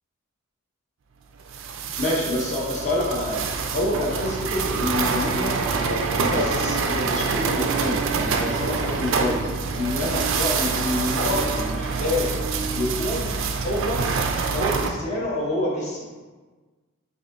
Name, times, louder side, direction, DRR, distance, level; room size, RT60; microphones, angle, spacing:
sound 1, 1.5-14.9, right 4 dB, 60° right, 0.4 m, -26 dB
voice 1, 2.0-3.4 3.7-5.6 5.8-9.4 9.7-12.3 12.7-13.3 13.6-14.0 14.5-16.1, left 1 dB, 35° left, -4 dB, 0.9 m, -27 dB
6.3 x 2.6 x 2.6 m, 1.3 s
head